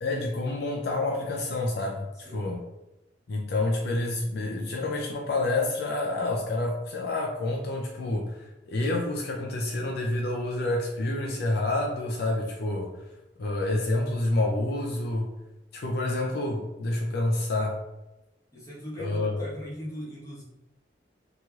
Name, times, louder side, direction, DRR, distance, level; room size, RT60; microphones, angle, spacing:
voice 1, 0.0-2.6 3.3-12.9 13.4-15.3 15.7-17.8 19.0-19.5, left 2 dB, 65° left, 1 dB, 0.4 m, -28 dB
voice 2, 18.5-20.4, equal, 20° left, -8 dB, 1.1 m, -40 dB
3.0 x 2.8 x 2.3 m, 0.98 s
head